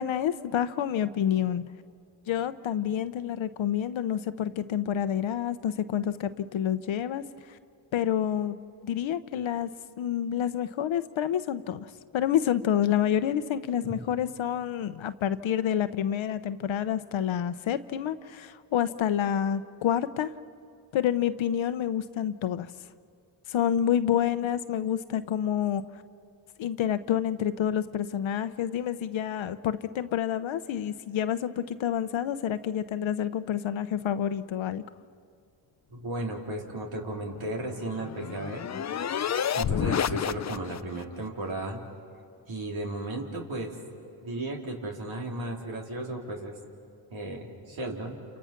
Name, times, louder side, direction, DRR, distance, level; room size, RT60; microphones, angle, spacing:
voice 1, 0.0-1.6 2.3-7.2 7.9-8.6 8.8-9.7 10.0-20.3 20.9-22.7 23.5-25.8 26.6-34.8, left 9 dB, 80° left, 13 dB, 0.9 m, -28 dB
voice 2, 35.9-38.6 39.5-41.8 42.5-43.7 44.2-46.5 47.1-48.2, right 1 dB, 80° right, 0 dB, 3.7 m, -34 dB
sound 1, 37.4-41.0, left 8 dB, 35° left, 0.5 m, -30 dB
30.0 x 28.5 x 5.9 m, 2.4 s
cardioid pair, 65°, 46 cm